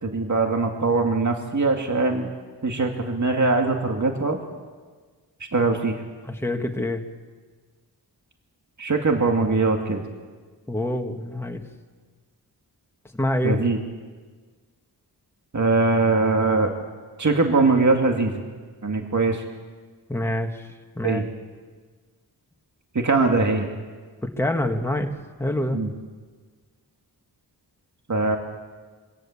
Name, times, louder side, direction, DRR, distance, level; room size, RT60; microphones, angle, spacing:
voice 1, 0.0-2.3 2.6-4.4 5.5-5.9 8.8-10.0 13.4-13.8 15.5-16.7 17.2-18.3 18.8-19.4 21.0-21.3 22.9-23.7 25.7-25.9 28.1-28.4, right 3 dB, 45° right, 3 dB, 2.2 m, -21 dB
voice 2, 6.2-7.0 10.7-11.6 13.1-13.6 20.1-20.7 21.0-21.2 24.2-25.1 25.4-25.8, left 1 dB, 5° left, 3 dB, 1.7 m, -26 dB
25.0 x 17.0 x 7.3 m, 1.5 s
wide cardioid pair, 80°, 41 cm